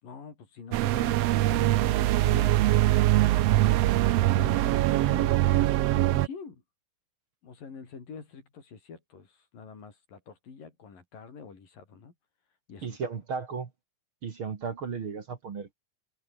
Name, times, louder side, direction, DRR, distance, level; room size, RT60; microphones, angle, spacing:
voice 1, 0.0-2.7 4.3-6.6 7.4-12.1 12.7-13.0, left 5 dB, 85° left, 6.4 m, -45 dB
sound 1, 0.7-6.3, right 15 dB, 85° right, 1.4 m, -23 dB
voice 2, 12.8-13.7 14.2-15.7, right 5 dB, 45° right, 2.4 m, -35 dB
omnidirectional pair, 3.8 m